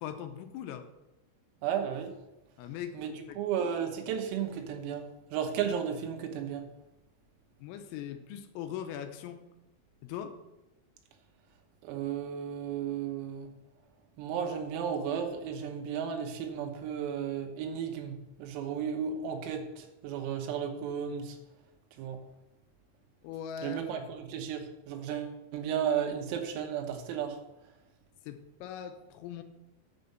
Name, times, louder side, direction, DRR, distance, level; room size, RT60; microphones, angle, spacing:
voice 1, 0.0-0.9 2.6-3.0 3.3-3.4 7.6-9.4 10.0-10.4 23.2-23.8 28.3-29.4, left 9 dB, 85° left, 7 dB, 3.5 m, -40 dB
voice 2, 1.6-2.1 3.0-3.1 3.4-5.0 5.3-6.7 11.8-13.5 14.2-21.4 22.0-22.2 23.6-27.4, right 8 dB, 85° right, 4 dB, 3.9 m, -34 dB
8.4 x 6.9 x 6.6 m, 0.95 s
omnidirectional pair, 6.0 m